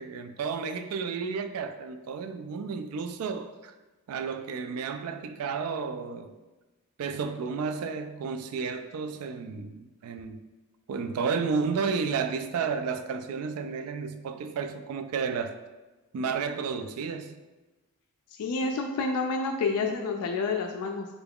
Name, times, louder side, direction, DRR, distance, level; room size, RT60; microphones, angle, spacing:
voice 1, 0.0-3.7 4.1-6.3 7.0-10.5 10.9-15.6 16.1-17.3, right 5 dB, 75° right, 0.3 m, -32 dB
voice 2, 18.4-21.1, left 4 dB, 80° left, 0.3 m, -29 dB
3.9 x 2.3 x 3.4 m
head